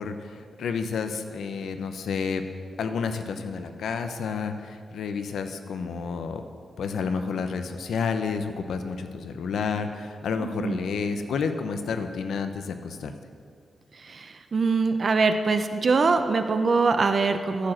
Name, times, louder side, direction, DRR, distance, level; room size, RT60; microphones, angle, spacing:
voice 1, 0.0-2.4 2.8-6.4 6.8-13.1, left 5 dB, 90° left, 8 dB, 0.7 m, -30 dB
voice 2, 10.4-10.9 14.0-17.7, right 4 dB, 45° right, 8 dB, 0.6 m, -23 dB
11.5 x 4.9 x 7.6 m, 2.3 s
cardioid pair, 105°, 0 cm